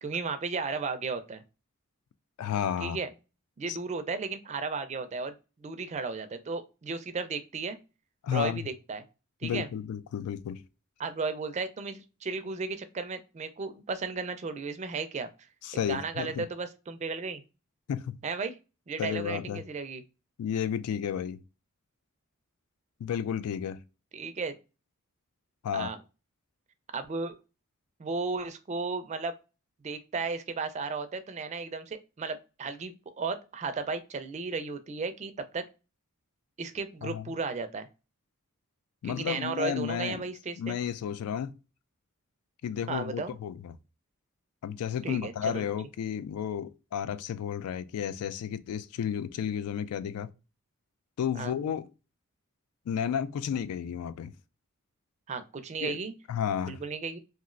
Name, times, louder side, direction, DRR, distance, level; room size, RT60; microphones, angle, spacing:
voice 1, 0.0-1.4 2.8-3.1 3.6-5.3 5.6-7.8 8.3-9.0 9.4-9.7 11.0-15.3 15.9-17.4 18.2-18.6 18.9-20.0 24.1-24.6 25.7-26.0 26.9-27.4 28.0-29.3 29.8-35.7 36.6-37.9 39.0-40.8 42.9-43.4 45.0-45.6 51.3-51.5 55.3-56.1 56.6-57.2, right 4 dB, 30° right, 0.4 m, -34 dB
voice 2, 2.4-3.0 3.7-3.8 8.2-8.7 9.4-10.6 15.6-16.4 17.9-18.2 19.0-19.6 20.4-21.4 23.0-23.8 25.6-25.9 37.0-37.3 39.0-40.2 40.6-41.5 42.6-43.7 44.6-50.3 51.2-51.9 52.9-54.3 55.8-56.0 56.3-56.8, left 8 dB, 90° left, 0.3 m, -32 dB
3.0 x 2.4 x 2.4 m
head